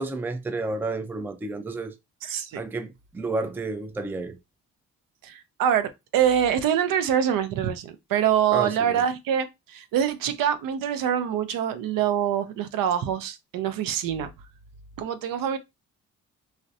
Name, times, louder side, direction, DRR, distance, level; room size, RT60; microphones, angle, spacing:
voice 1, 0.0-2.0 2.6-4.4 8.5-9.0, right 3 dB, 5° right, 0.3 m, -31 dB
voice 2, 2.2-2.6 5.2-14.3 15.0-15.6, right 9 dB, 70° right, 0.5 m, -25 dB
2.4 x 2.1 x 2.6 m
supercardioid pair, 60°, 35 cm